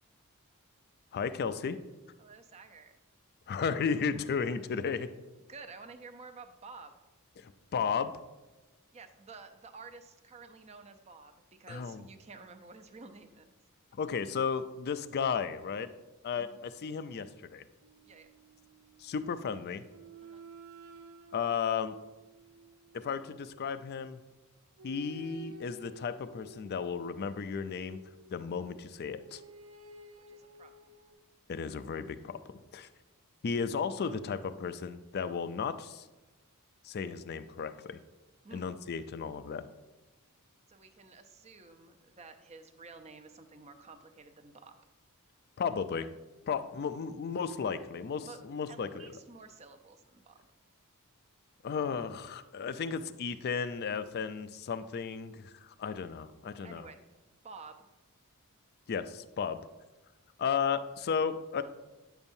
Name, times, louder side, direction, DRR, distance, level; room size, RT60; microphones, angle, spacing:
voice 1, 1.1-1.8 3.5-5.1 7.4-8.1 11.7-12.1 14.0-15.9 16.2-17.6 19.0-19.8 21.3-22.0 22.9-24.2 24.8-28.0 28.3-29.4 31.5-32.4 32.7-32.9 33.4-36.1 36.8-38.0 38.5-39.7 45.6-46.1 46.5-49.0 51.6-56.9 58.9-59.6 60.4-61.6, left 6 dB, 45° left, 12 dB, 0.4 m, -34 dB
voice 2, 2.2-3.0 5.5-6.9 8.9-13.5 16.3-16.6 18.1-18.3 20.2-20.4 30.3-31.0 38.4-38.6 40.7-44.8 48.2-48.4 48.7-50.4 56.6-57.0 57.3-57.8, right 4 dB, 30° right, 7 dB, 0.5 m, -51 dB
sound 1, 17.8-19.3 19.9-23.8 24.8-28.4 29.2-31.1, right 3 dB, 75° right, 0.6 m, -53 dB
8.9 x 7.0 x 2.7 m, 1.1 s
head